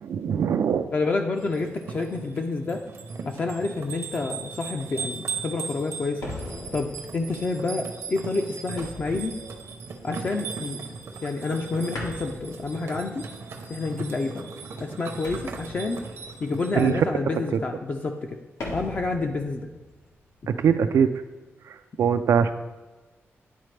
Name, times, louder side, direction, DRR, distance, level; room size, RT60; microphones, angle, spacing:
voice 1, 0.0-0.9 16.7-16.9 20.5-21.1 21.7-22.5, right 7 dB, 90° right, 8 dB, 0.3 m, -22 dB
voice 2, 0.9-2.8 3.2-6.3 6.7-9.3 10.0-10.8 11.2-13.3 13.7-14.5 14.8-16.0 16.4-18.4 18.7-19.7, left 3 dB, 35° left, 3 dB, 0.4 m, -28 dB
sound 1, 1.4-16.9, right 5 dB, 65° right, 0.7 m, -38 dB
sound 2, 6.2-10.5 10.9-11.6 11.9-13.5 15.2-16.9 18.6-20.7, left 1 dB, 85° left, 1.3 m, -41 dB
10.0 x 4.1 x 3.2 m, 1.2 s
wide cardioid pair, 175°, 5 cm